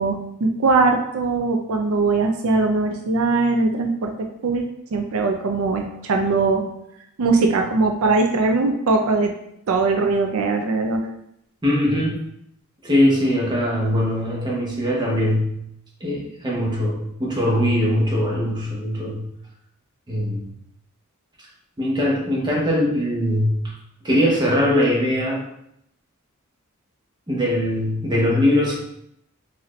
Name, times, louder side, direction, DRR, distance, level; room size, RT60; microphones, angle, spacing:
voice 1, 0.0-4.7 4.9-6.7 7.2-9.3 9.7-11.1, right 3 dB, 75° right, 3 dB, 0.4 m, -20 dB
voice 2, 11.6-12.2 12.8-15.6 16.0-19.2 20.1-20.4 21.8-23.6 24.0-25.4 27.3-28.8, left 1 dB, 20° right, -3 dB, 0.9 m, -21 dB
4.0 x 2.6 x 3.1 m, 0.76 s
head